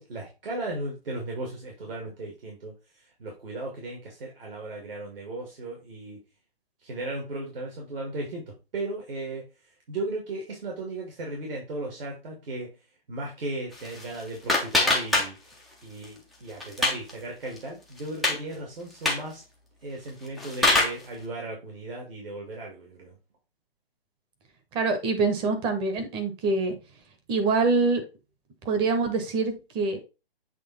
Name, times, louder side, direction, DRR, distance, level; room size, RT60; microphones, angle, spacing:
voice 1, 0.0-6.2 6.8-8.4 8.7-9.5 9.9-12.7 13.1-19.4 19.8-23.1, right 2 dB, 65° right, 0 dB, 2.3 m, -36 dB
sound 1, 13.7-15.7 16.0-17.1 17.5-17.6 18.0-18.4 18.9-19.3 20.1-21.0, left 2 dB, ahead, 0.5 m, -25 dB
voice 2, 24.7-26.7 27.3-28.0 28.6-30.0, right 3 dB, 15° right, 6 dB, 0.9 m, -25 dB
7.7 x 3.1 x 4.1 m, 0.29 s
hypercardioid pair, 140°, 30 cm